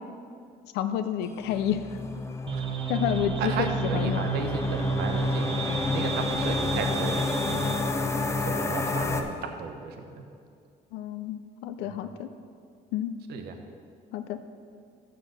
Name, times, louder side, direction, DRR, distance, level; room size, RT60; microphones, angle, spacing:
voice 1, 0.7-1.9 2.9-4.3 10.9-12.3 12.9-13.1 14.1-14.4, left 10 dB, 85° left, 11 dB, 0.4 m, -29 dB
sound 1, 1.4-9.2, left 3 dB, 15° left, 0.6 m, -30 dB
sound 2, 2.5-7.9, right 3 dB, 30° right, 0.7 m, -31 dB
voice 2, 3.4-7.7 8.4-10.3 11.9-12.0 13.3-13.6, right 5 dB, 75° right, 6 dB, 0.9 m, -34 dB
6.6 x 6.3 x 6.4 m, 2.3 s
cardioid pair, 110°, 17 cm